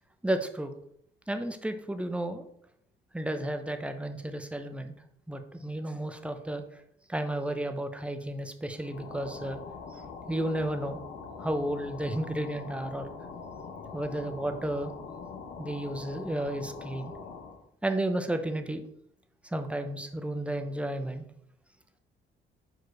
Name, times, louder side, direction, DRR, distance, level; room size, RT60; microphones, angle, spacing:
voice 1, 0.2-0.7 1.3-2.4 3.1-4.9 5.3-6.6 7.1-9.6 9.9-10.0 10.3-11.0 11.4-13.1 13.9-14.9 15.6-17.1 17.8-18.8 19.5-21.2, right 1 dB, 5° right, 7 dB, 0.7 m, -32 dB
sound 1, 8.8-17.6, left 5 dB, 85° left, 1.0 m, -43 dB
4.9 x 4.5 x 4.6 m, 0.71 s
cardioid pair, 90°, 20 cm